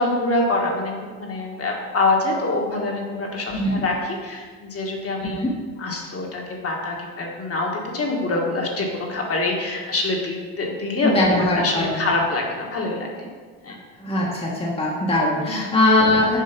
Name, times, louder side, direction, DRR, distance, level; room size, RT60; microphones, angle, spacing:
voice 1, 0.0-5.4 5.8-13.3 13.6-13.8 15.5-15.6, left 2 dB, 35° left, 0 dB, 1.5 m, -25 dB
voice 2, 3.5-3.8 5.3-5.5 11.0-12.0 14.0-16.4, left 1 dB, 15° left, -4 dB, 1.2 m, -21 dB
7.7 x 4.5 x 5.9 m, 1.6 s
cardioid pair, 120°, 41 cm